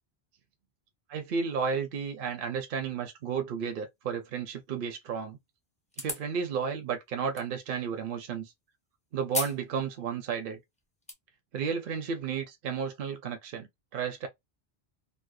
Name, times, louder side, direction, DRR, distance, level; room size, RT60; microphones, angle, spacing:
voice 1, 1.3-5.4 6.0-8.5 9.1-10.6 11.5-14.3, right 6 dB, 65° right, 0.7 m, -33 dB
sound 1, 5.9-6.3 7.4-7.5 9.3-9.6 10.0-10.1 10.8-11.1, left 2 dB, 10° left, 0.5 m, -34 dB
2.6 x 2.1 x 2.3 m
omnidirectional pair, 1.0 m